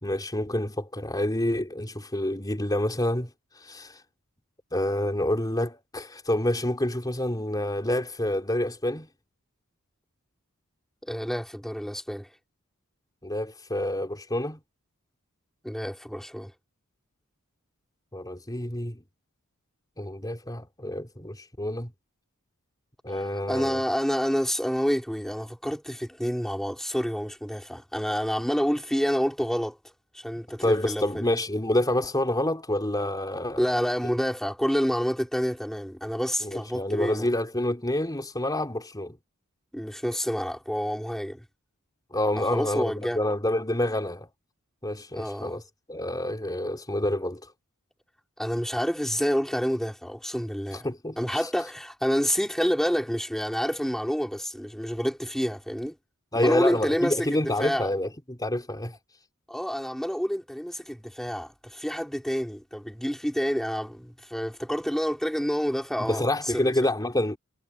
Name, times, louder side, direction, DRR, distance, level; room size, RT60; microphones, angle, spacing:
voice 1, 0.0-3.3 3.6-4.0 4.7-9.1 13.2-14.6 18.1-19.0 20.0-21.9 23.0-23.8 30.6-33.6 36.4-39.2 42.1-44.3 44.8-45.6 45.9-47.4 50.7-51.2 56.3-59.0 66.0-67.4, left 1 dB, 20° left, 3.7 m, -28 dB
voice 2, 11.0-12.3 15.6-16.5 23.5-29.8 30.1-31.3 33.6-37.3 39.7-41.4 42.4-43.2 45.1-45.6 48.4-50.9 51.2-55.9 56.3-57.9 59.5-66.2 66.5-66.7, equal, ahead, 3.9 m, -28 dB
head